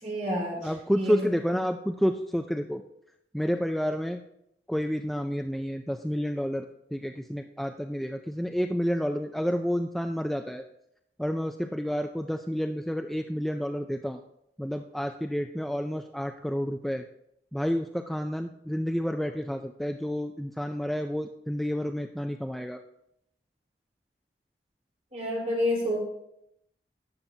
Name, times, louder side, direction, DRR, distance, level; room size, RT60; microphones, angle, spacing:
voice 1, 0.0-0.6 1.0-1.2 25.1-26.0, equal, 40° right, -3 dB, 3.9 m, -28 dB
voice 2, 0.6-2.8 3.3-4.2 4.7-10.6 11.2-14.2 14.6-17.0 17.5-22.8, equal, ahead, 5 dB, 0.3 m, -30 dB
17.5 x 7.1 x 2.7 m, 0.79 s
head